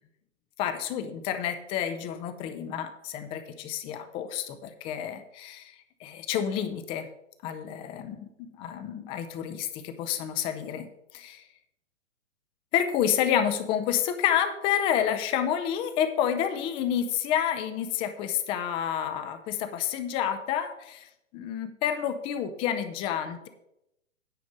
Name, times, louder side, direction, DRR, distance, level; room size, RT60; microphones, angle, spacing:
voice 1, 0.6-7.1 7.4-10.9 11.1-11.4 12.7-21.1 21.3-23.5, left 9 dB, 15° left, 9 dB, 0.5 m, -29 dB
9.7 x 5.1 x 7.2 m, 0.82 s
figure-of-eight pair, 120°, 38 cm